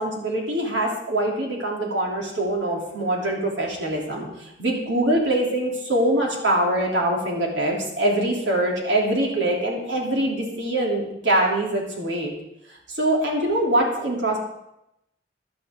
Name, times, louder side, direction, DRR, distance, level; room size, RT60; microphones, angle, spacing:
voice 1, 0.0-4.3 4.6-12.3 12.9-14.4, right 1 dB, 75° right, -1 dB, 3.4 m, -23 dB
16.5 x 11.0 x 3.8 m, 0.83 s
head